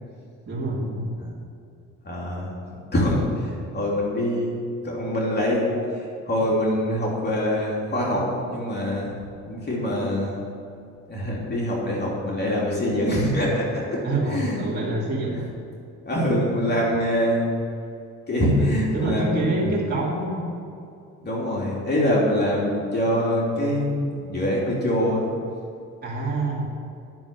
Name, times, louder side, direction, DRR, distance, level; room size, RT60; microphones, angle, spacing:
voice 1, 0.5-1.1 14.0-15.4 18.5-20.5 26.0-26.6, right 2 dB, 35° right, -5 dB, 2.6 m, -27 dB
voice 2, 2.0-2.5 2.9-3.3 3.7-4.5 4.8-5.7 6.3-9.1 9.4-10.4 11.1-14.0 14.3-14.6 16.0-17.5 18.3-19.7 21.2-25.2, left 1 dB, 35° left, -4 dB, 3.1 m, -24 dB
10.5 x 7.0 x 8.4 m, 2.5 s
cardioid pair, 90°, 30 cm